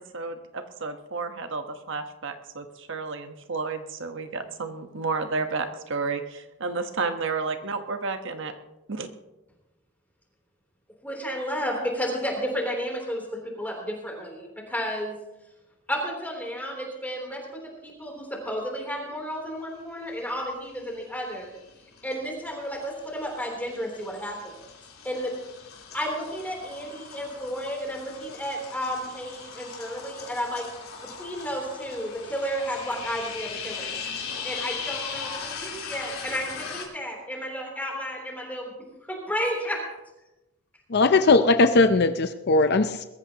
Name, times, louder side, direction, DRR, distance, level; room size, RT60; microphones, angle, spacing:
voice 1, 0.1-8.5 8.9-9.1, right 4 dB, 60° right, 7 dB, 1.2 m, -31 dB
voice 2, 11.0-15.2 15.9-21.5 22.0-24.5 25.0-25.3 25.9-30.7 31.2-34.0 34.4-38.7 39.1-39.8, equal, 10° left, -1 dB, 3.3 m, -32 dB
sound 1, 20.5-21.0 21.3-36.9, left 6 dB, 80° left, 3.7 m, -39 dB
voice 3, 40.9-43.1, left 3 dB, 50° left, 9 dB, 0.6 m, -19 dB
21.5 x 14.0 x 2.9 m, 1.0 s
head